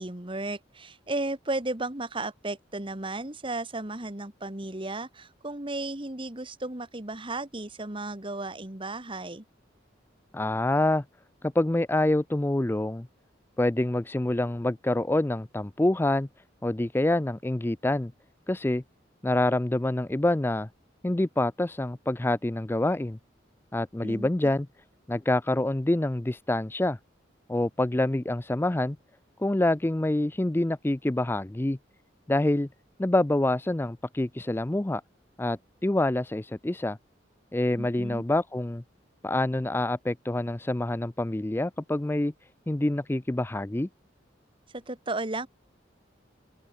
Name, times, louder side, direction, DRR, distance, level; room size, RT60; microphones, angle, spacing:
voice 1, 0.0-9.4 24.0-24.3 37.8-38.2 44.7-45.5, right 2 dB, 25° right, 1.8 m, -34 dB
voice 2, 10.3-11.0 11.5-13.1 13.6-16.3 16.6-18.1 18.5-18.8 19.2-20.7 21.0-23.2 23.7-24.7 25.1-27.0 27.5-29.0 29.4-31.8 32.3-32.7 33.0-35.0 35.4-37.0 37.5-38.8 39.2-42.3 42.7-43.9, left 1 dB, 10° left, 0.4 m, -26 dB
open air
head